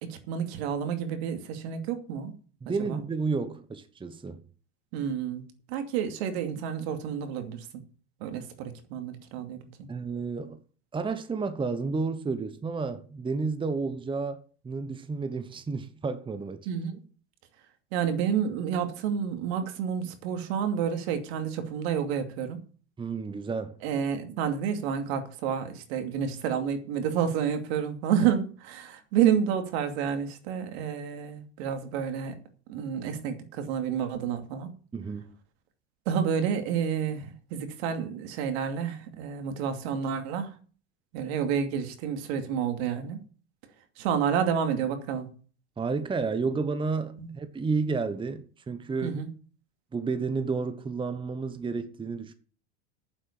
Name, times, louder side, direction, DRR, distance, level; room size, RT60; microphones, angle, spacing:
voice 1, 0.0-2.3 2.9-3.0 4.9-5.4 5.7-7.7 8.2-9.9 16.7-17.0 17.9-22.6 23.8-32.3 32.7-34.7 36.1-40.5 41.1-43.2 44.0-45.3 47.2-47.3 49.0-49.3, right 8 dB, 65° right, 2.6 m, -29 dB
voice 2, 2.6-4.4 9.9-10.6 10.9-14.4 14.6-16.7 23.0-23.8 34.9-35.4 45.8-49.2 49.9-52.3, right 4 dB, 15° right, 1.1 m, -31 dB
9.0 x 7.6 x 8.6 m
hypercardioid pair, 105°, 34 cm